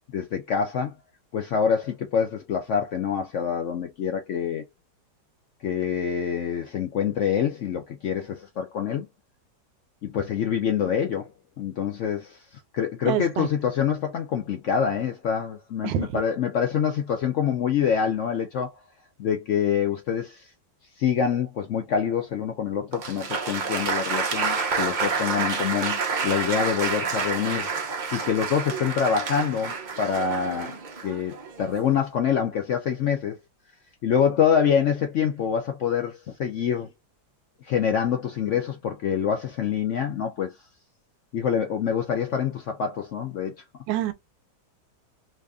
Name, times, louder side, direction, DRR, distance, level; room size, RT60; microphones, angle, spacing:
voice 1, 0.1-0.9 1.3-4.6 5.6-9.1 10.0-11.3 11.6-18.7 19.2-20.5 21.0-27.7 28.1-30.7 31.0-33.4 34.0-36.9 37.6-40.6 41.3-43.5, left 7 dB, 80° left, 0.6 m, -26 dB
voice 2, 13.0-13.5 15.8-16.2 43.9-44.1, right 12 dB, 90° right, 1.3 m, -26 dB
Applause, 22.9-31.9, right 5 dB, 60° right, 0.4 m, -29 dB
3.2 x 2.5 x 3.5 m
omnidirectional pair, 1.9 m